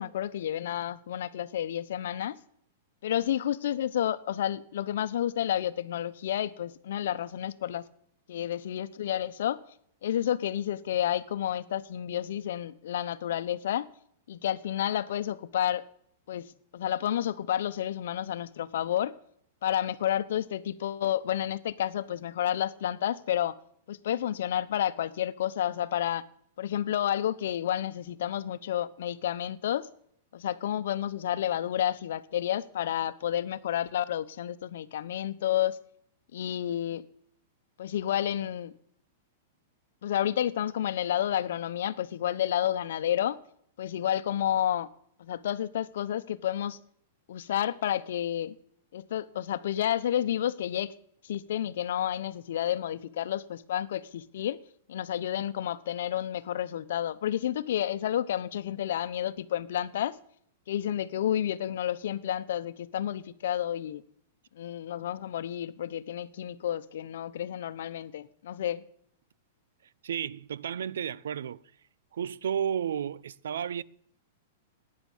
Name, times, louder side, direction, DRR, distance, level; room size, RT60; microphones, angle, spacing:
voice 1, 0.0-2.4 3.0-7.8 8.3-9.6 10.0-13.9 14.3-15.8 16.3-19.1 19.6-23.5 23.9-26.2 26.6-29.9 30.3-35.8 36.3-37.0 37.8-38.7 40.0-43.4 43.8-44.9 45.2-46.8 47.3-48.5 48.9-50.9 51.2-54.6 54.9-60.2 60.7-64.0 64.6-68.8, left 11 dB, 70° left, 1.0 m, -30 dB
voice 2, 70.0-71.6 72.1-73.8, right 8 dB, 90° right, 0.6 m, -32 dB
18.0 x 9.7 x 7.3 m
supercardioid pair, 160°, 0 cm